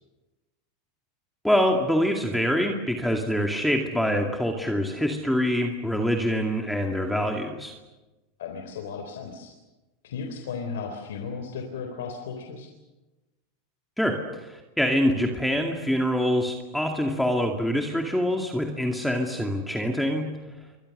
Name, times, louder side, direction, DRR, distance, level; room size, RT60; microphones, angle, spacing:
voice 1, 1.4-7.7 14.0-20.4, equal, ahead, 2 dB, 2.4 m, -25 dB
voice 2, 8.4-9.5 10.0-12.7, left 5 dB, 90° left, 4 dB, 3.8 m, -35 dB
28.0 x 25.0 x 6.7 m, 1.1 s
supercardioid pair, 135°, 0 cm